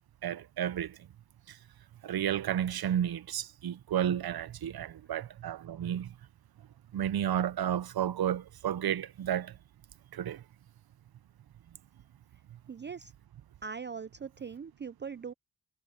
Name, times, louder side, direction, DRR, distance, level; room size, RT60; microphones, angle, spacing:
voice 1, 0.2-1.0 1.5-1.6 2.0-6.1 6.9-9.5 10.1-10.4, right 10 dB, 70° right, 0.9 m, -32 dB
voice 2, 12.7-13.1 13.6-15.3, right 6 dB, 30° right, 0.5 m, -41 dB
cardioid pair, 60°, 39 cm